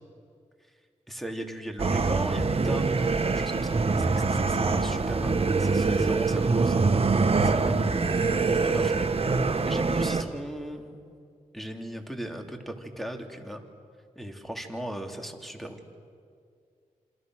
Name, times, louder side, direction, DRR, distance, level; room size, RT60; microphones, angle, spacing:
voice 1, 1.1-8.0 8.6-9.1 9.6-11.0 11.5-13.6 14.1-15.8, equal, ahead, 4 dB, 3.4 m, -38 dB
sound 1, 1.8-10.2, right 4 dB, 45° right, 1.6 m, -24 dB
27.0 x 26.5 x 6.5 m, 2.3 s
cardioid pair, 55°, 14 cm